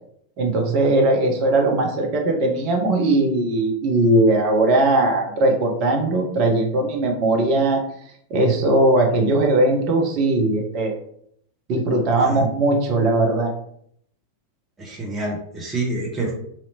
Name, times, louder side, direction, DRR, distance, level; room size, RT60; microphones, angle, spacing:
voice 1, 0.4-7.8 8.3-11.0 11.7-13.5, right 2 dB, 40° right, 2 dB, 0.7 m, -19 dB
voice 2, 14.8-16.3, right 2 dB, 15° right, -3 dB, 1.0 m, -27 dB
3.2 x 2.8 x 2.8 m, 0.67 s
figure-of-eight pair, 90°, 0 cm